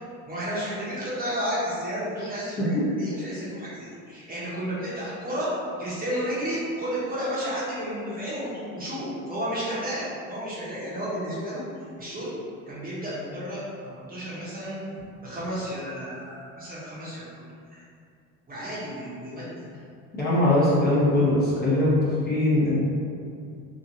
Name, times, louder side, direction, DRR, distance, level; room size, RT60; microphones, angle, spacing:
voice 1, 0.3-5.5 5.8-11.6 12.0-12.3 12.7-14.8 15.2-17.2 17.7-17.8 18.5-19.5, equal, 25° right, -9 dB, 1.0 m, -32 dB
voice 2, 20.2-22.8, left 1 dB, 25° left, -9 dB, 0.9 m, -21 dB
3.0 x 2.6 x 2.6 m, 2.3 s
supercardioid pair, 100°, 35 cm